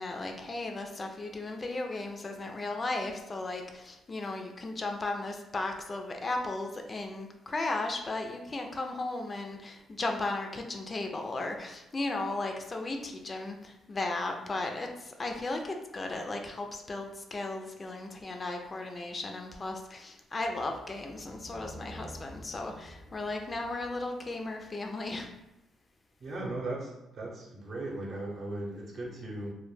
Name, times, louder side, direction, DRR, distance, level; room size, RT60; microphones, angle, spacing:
voice 1, 0.0-25.3, left 2 dB, 30° left, 3 dB, 0.3 m, -35 dB
sound 1, 20.4-24.8, equal, 15° right, 0.7 m, -50 dB
voice 2, 26.2-29.5, right 2 dB, 55° right, -2 dB, 0.7 m, -37 dB
2.1 x 2.1 x 3.1 m, 0.92 s
cardioid pair, 90°, 0 cm